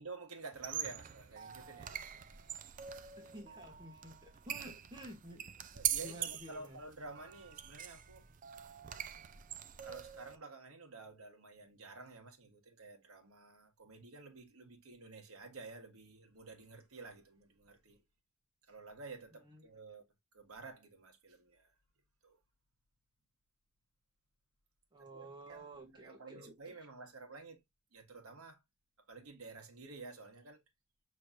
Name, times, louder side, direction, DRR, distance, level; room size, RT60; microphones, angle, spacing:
voice 1, 0.0-2.9 4.5-4.7 5.7-8.3 9.8-18.0 18.7-20.0 20.3-21.7 22.2-22.4 25.1-27.6 27.9-28.6 29.1-30.6, right 3 dB, 85° right, 1.4 m, -51 dB
sound 1, 0.5-10.4, right 10 dB, 40° right, 0.4 m, -43 dB
voice 2, 3.2-5.4 6.0-6.8 19.4-19.6 24.9-26.8, right 1 dB, 20° right, 1.2 m, -52 dB
6.1 x 3.1 x 2.6 m
head